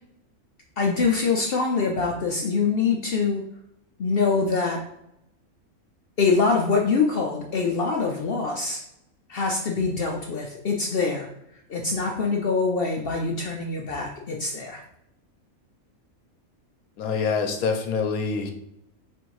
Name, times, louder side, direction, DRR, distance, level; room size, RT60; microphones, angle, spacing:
voice 1, 0.8-3.4 4.0-4.8 6.2-8.8 9.3-11.3 11.7-14.8, left 4 dB, 60° left, 1 dB, 0.6 m, -24 dB
voice 2, 17.0-18.5, left 5 dB, 85° left, 5 dB, 1.2 m, -25 dB
4.2 x 2.6 x 4.6 m, 0.79 s
omnidirectional pair, 1.5 m